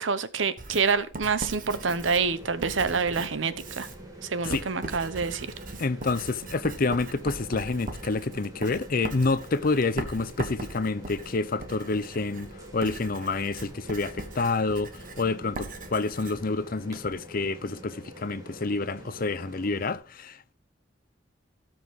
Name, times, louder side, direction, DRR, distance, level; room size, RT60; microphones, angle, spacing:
voice 1, 0.0-3.9 4.2-5.5, right 5 dB, 85° right, 0.9 m, -27 dB
Writing, 0.6-17.2, right 2 dB, 45° right, 1.5 m, -40 dB
sound 1, 1.7-19.9, right 1 dB, 20° right, 2.6 m, -46 dB
voice 2, 5.8-20.5, left 3 dB, 50° left, 0.6 m, -28 dB
18.0 x 6.0 x 3.6 m
head